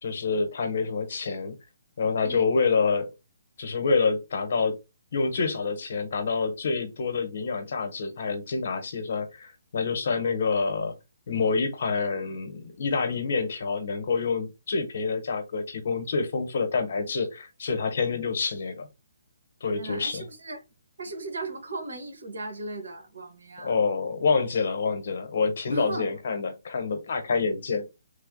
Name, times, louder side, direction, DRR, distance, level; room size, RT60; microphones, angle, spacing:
voice 1, 0.0-1.5 2.0-3.1 3.6-4.8 5.1-10.9 11.3-18.9 19.6-20.3 23.6-27.8, left 4 dB, 50° left, 0.9 m, -27 dB
voice 2, 19.7-20.6 21.0-23.8 25.7-26.1, right 2 dB, 85° right, 1.4 m, -37 dB
3.4 x 2.2 x 3.7 m
hypercardioid pair, 170°, 0 cm